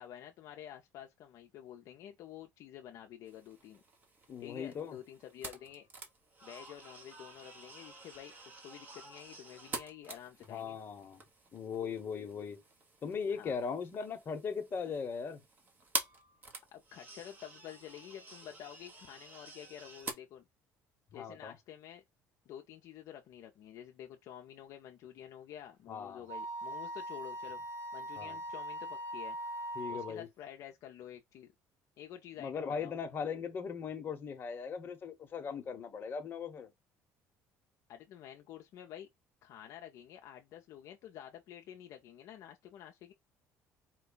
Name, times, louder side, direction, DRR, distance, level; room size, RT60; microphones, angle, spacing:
voice 1, 0.0-3.8 4.4-5.9 6.4-10.8 13.3-13.5 16.7-20.4 21.1-22.0 22.5-27.6 27.9-29.4 29.9-31.5 32.0-32.9 37.9-39.1 39.4-43.1, left 10 dB, 65° left, 0.5 m, -50 dB
sound 1, 3.3-20.1, right 3 dB, 30° right, 1.1 m, -47 dB
voice 2, 4.3-5.0 10.5-11.2 11.5-12.6 13.0-15.4 21.1-21.5 25.9-26.3 28.2-28.4 29.8-30.3 32.4-36.7, left 6 dB, 35° left, 1.0 m, -39 dB
Wind instrument woodwind instrument, 26.3-30.1, right 1 dB, 75° right, 1.2 m, -41 dB
4.5 x 2.2 x 3.9 m
cardioid pair, 120°, 6 cm